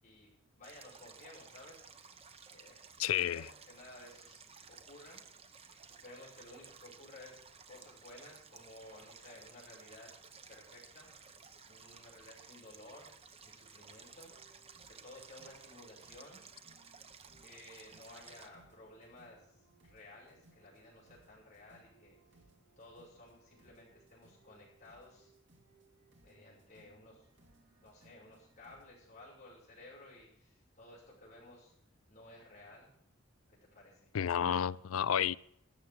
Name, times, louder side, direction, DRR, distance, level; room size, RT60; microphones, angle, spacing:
voice 1, 0.0-10.1 10.5-11.1 11.7-13.1 13.4-14.3 14.9-16.4 17.4-19.5 19.8-22.4 22.8-25.3 26.2-27.3 27.8-31.7 32.1-32.9 33.5-34.1, left 1 dB, 35° left, 6.2 m, -55 dB
Stream, 0.6-18.5, right 6 dB, 30° right, 0.8 m, -56 dB
voice 2, 3.0-3.5 34.1-35.4, left 9 dB, 85° left, 0.4 m, -31 dB
sound 1, 14.2-28.9, right 3 dB, 55° right, 2.3 m, -67 dB
13.5 x 7.1 x 9.7 m
head